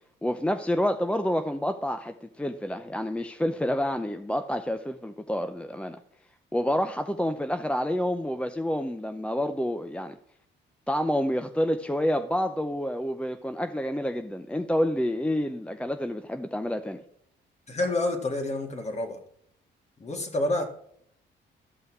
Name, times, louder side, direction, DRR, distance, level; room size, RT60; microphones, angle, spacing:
voice 1, 0.2-6.0 6.5-10.2 10.9-17.0, equal, 5° left, 7 dB, 0.5 m, -28 dB
voice 2, 17.7-19.2 20.0-20.6, left 2 dB, 35° left, 4 dB, 2.0 m, -28 dB
12.5 x 5.6 x 4.7 m, 0.67 s
cardioid pair, 90°, 20 cm